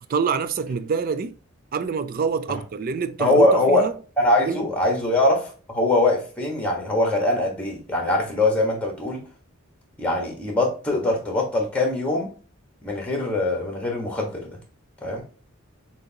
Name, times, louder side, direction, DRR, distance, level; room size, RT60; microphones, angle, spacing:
voice 1, 0.1-1.4 1.7-3.9 4.5-4.7, right 5 dB, 45° right, 0.4 m, -26 dB
voice 2, 3.2-3.9 4.2-9.2 10.0-12.3 12.8-14.6 15.0-15.2, left 2 dB, 5° left, 1.4 m, -22 dB
6.4 x 2.7 x 2.8 m
head